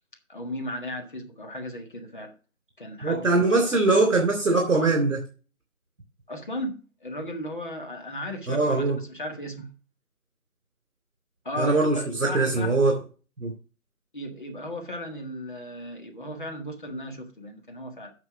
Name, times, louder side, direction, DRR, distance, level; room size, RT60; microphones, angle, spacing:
voice 1, 0.3-2.4 2.8-4.0 6.3-9.7 11.5-12.7 14.1-18.1, left 1 dB, 35° left, 1.6 m, -36 dB
voice 2, 3.0-5.2 8.5-9.0 11.6-13.0 13.4-13.5, right 3 dB, 55° right, 3.4 m, -22 dB
9.6 x 5.9 x 5.9 m
figure-of-eight pair, 175°, 43 cm